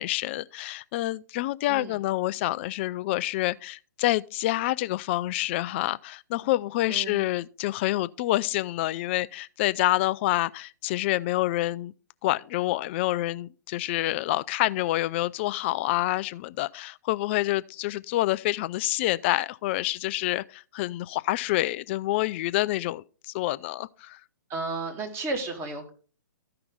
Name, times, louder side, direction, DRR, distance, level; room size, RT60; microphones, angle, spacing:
voice 1, 0.0-11.9 12.2-24.2, left 17 dB, 35° left, 0.3 m, -27 dB
voice 2, 6.9-7.3 24.5-25.9, right 3 dB, 25° right, 2.1 m, -33 dB
13.5 x 5.7 x 3.7 m
figure-of-eight pair, 125°, 11 cm